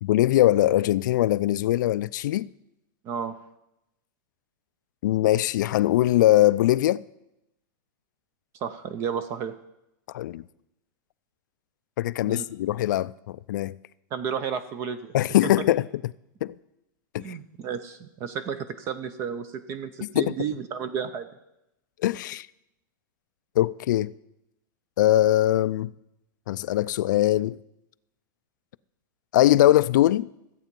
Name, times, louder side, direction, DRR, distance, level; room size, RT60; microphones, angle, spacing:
voice 1, 0.0-2.5 5.0-7.0 10.1-10.4 12.0-13.8 15.1-15.9 16.4-16.5 17.1-17.4 20.0-20.3 22.0-22.5 23.6-24.1 25.0-25.9 26.5-27.6 29.3-30.3, left 14 dB, 60° left, 0.4 m, -21 dB
voice 2, 3.0-3.3 8.6-9.5 12.3-12.4 14.1-15.1 17.2-21.3, right 7 dB, 25° right, 0.5 m, -32 dB
14.0 x 8.4 x 5.3 m
supercardioid pair, 170°, 11 cm